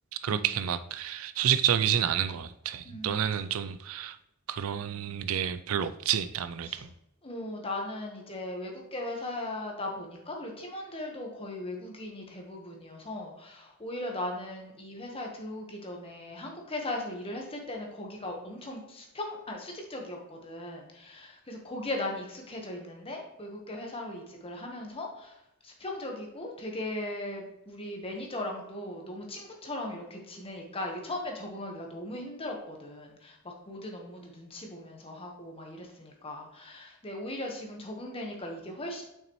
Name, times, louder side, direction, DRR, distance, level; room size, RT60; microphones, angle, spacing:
voice 1, 0.2-4.2 4.5-6.9, right 9 dB, 75° right, 0.4 m, -29 dB
voice 2, 2.8-3.2 6.6-6.9 7.2-25.4 25.6-39.0, left 1 dB, 25° left, 1.2 m, -38 dB
6.8 x 5.7 x 3.1 m
head